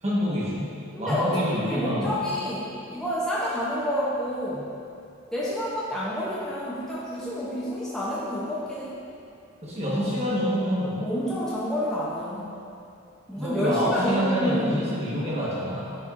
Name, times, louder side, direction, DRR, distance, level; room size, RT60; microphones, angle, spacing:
voice 1, 0.0-2.2 9.6-11.1 13.3-16.0, equal, 30° right, -6 dB, 1.1 m, -27 dB
voice 2, 0.9-4.7 5.3-9.0 11.0-12.6 13.3-14.8, equal, ahead, -9 dB, 0.6 m, -29 dB
9.8 x 4.3 x 2.5 m, 2.6 s
head